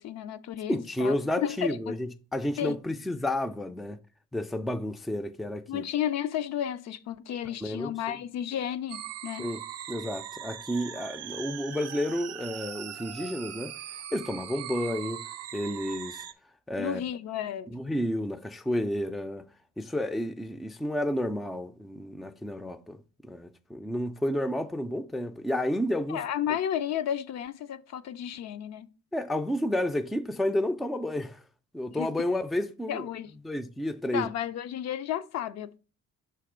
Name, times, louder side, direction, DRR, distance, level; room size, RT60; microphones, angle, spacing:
voice 1, 0.0-2.0 2.6-2.8 5.7-9.5 16.8-17.7 26.1-28.9 31.9-32.1 32.9-33.3 34.1-35.8, left 10 dB, 60° left, 0.5 m, -32 dB
voice 2, 0.7-4.0 4.3-5.9 7.6-8.2 9.4-9.6 9.9-13.7 14.1-15.2 15.5-16.2 16.7-17.0 17.7-19.5 19.8-26.2 29.1-31.4 31.7-33.1 33.4-34.3, left 1 dB, ahead, 0.3 m, -31 dB
sound 1, 8.9-16.3, right 10 dB, 55° right, 0.5 m, -40 dB
5.9 x 3.4 x 4.8 m
cardioid pair, 90°, 30 cm